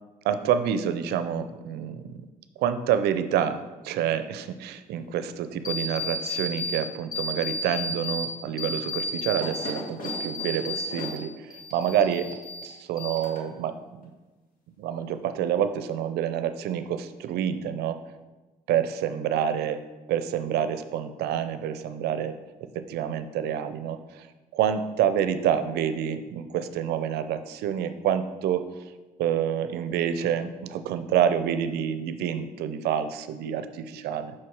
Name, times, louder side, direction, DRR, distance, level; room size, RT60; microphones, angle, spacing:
voice 1, 0.2-2.2 2.6-12.4 12.6-14.1 14.8-18.0 18.7-19.8 20.1-22.3 22.6-24.3 24.5-28.7 29.2-34.3, right 9 dB, 80° right, 11 dB, 0.5 m, -28 dB
sound 1, 5.6-6.8 7.1-8.3 8.6-11.2 11.5-12.7 13.0-13.6, left 2 dB, 55° left, 1.7 m, -32 dB
5.8 x 4.7 x 4.6 m, 1.2 s
supercardioid pair, 75°, 17 cm